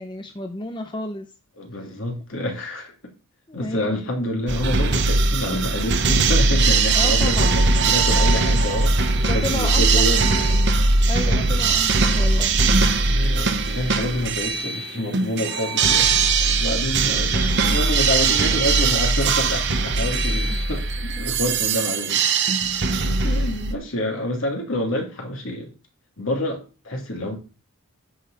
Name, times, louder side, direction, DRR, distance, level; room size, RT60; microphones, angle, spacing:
voice 1, 0.0-1.3 3.5-4.0 6.9-7.6 9.2-10.6 11.1-12.6 20.5-20.6 21.1-21.2 23.3-23.5, left 2 dB, 20° left, 0.7 m, -32 dB
voice 2, 1.6-2.9 3.5-10.2 11.3-11.5 13.1-16.1 16.4-25.7 26.2-27.3, left 1 dB, 60° left, 2.9 m, -28 dB
sound 1, 4.5-23.7, right 3 dB, 50° right, 1.0 m, -20 dB
10.0 x 6.4 x 4.1 m
head